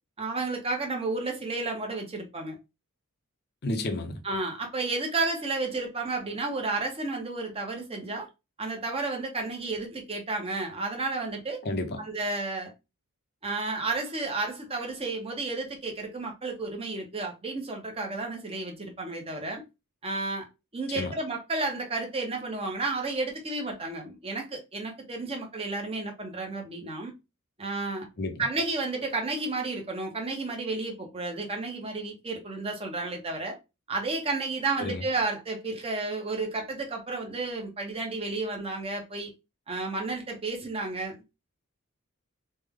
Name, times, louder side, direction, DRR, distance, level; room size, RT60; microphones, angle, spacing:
voice 1, 0.2-2.6 4.2-8.3 8.6-11.6 12.0-12.7 13.4-19.6 20.0-20.5 20.7-27.1 27.6-28.1 28.4-33.6 33.9-39.3 39.7-41.2, right 3 dB, 25° right, 0.8 m, -32 dB
voice 2, 3.6-4.2 11.6-12.0 20.9-21.1 28.2-28.5 34.8-35.0, left 2 dB, 50° left, 0.6 m, -31 dB
3.2 x 2.1 x 3.6 m
head